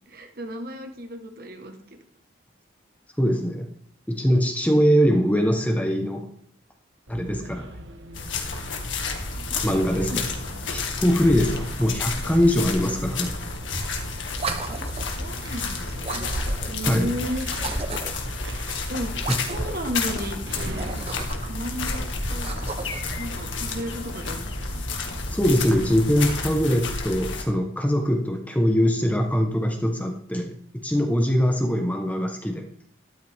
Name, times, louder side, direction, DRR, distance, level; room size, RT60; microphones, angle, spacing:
voice 1, 0.1-2.0 9.3-10.5 12.8-13.3 14.7-14.8 15.2-16.3 16.7-17.5 18.9-19.1 19.5-20.9 21.5-22.5 23.2-24.5 31.7-31.9, equal, 50° right, 5 dB, 1.5 m, -34 dB
voice 2, 3.2-3.7 4.1-6.3 7.1-7.7 9.6-10.3 10.7-13.4 16.8-17.1 19.3-19.4 25.2-32.6, equal, 10° left, 4 dB, 1.2 m, -22 dB
sound 1, 7.1-26.8, right 1 dB, 80° right, 1.6 m, -40 dB
sound 2, 8.1-27.4, left 3 dB, 85° left, 2.1 m, -31 dB
sound 3, 14.3-15.2 16.0-16.8 17.5-18.3 19.2-19.9 20.7-21.6 22.3-23.2, right 3 dB, 30° right, 1.0 m, -33 dB
13.0 x 12.0 x 3.6 m, 0.66 s
head